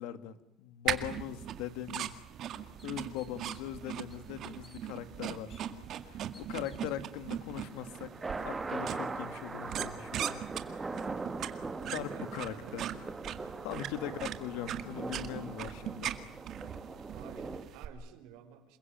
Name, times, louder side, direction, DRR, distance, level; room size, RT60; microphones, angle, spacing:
voice 1, 0.0-2.2 2.8-8.2 8.4-11.0 11.9-12.8 13.6-16.2, left 11 dB, 80° left, 12 dB, 2.3 m, -41 dB
sound 1, 0.9-17.9, right 10 dB, 40° right, 2.0 m, -40 dB
sound 2, 2.4-2.5 2.8-3.8 4.1-4.8 5.5-5.6 6.3-7.0, left 2 dB, 15° left, 3.9 m, -59 dB
sound 3, 7.5-17.6, right 3 dB, 15° right, 1.6 m, -41 dB
voice 2, 11.8-12.8 14.0-14.3 17.1-18.8, right 10 dB, 80° right, 7 dB, 4.7 m, -52 dB
28.0 x 22.5 x 9.3 m, 0.75 s
cardioid pair, 180°, 0 cm